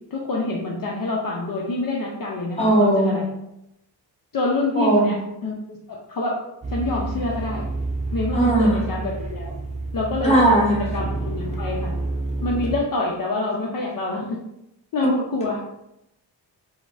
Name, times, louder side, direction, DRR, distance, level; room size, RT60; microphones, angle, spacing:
voice 1, 0.1-3.3 4.3-5.2 5.4-6.4 6.7-7.6 8.1-9.5 9.9-11.9 12.4-14.4 14.9-15.6, left 2 dB, 45° left, -2 dB, 0.5 m, -26 dB
voice 2, 2.6-3.2 4.7-5.1 8.3-8.7 10.2-10.8 15.0-15.1, right 1 dB, 15° left, -4 dB, 1.0 m, -18 dB
sound 1, 6.6-12.8, right 2 dB, 15° right, 0.5 m, -29 dB
3.7 x 2.1 x 2.4 m, 0.85 s
cardioid pair, 85°, 46 cm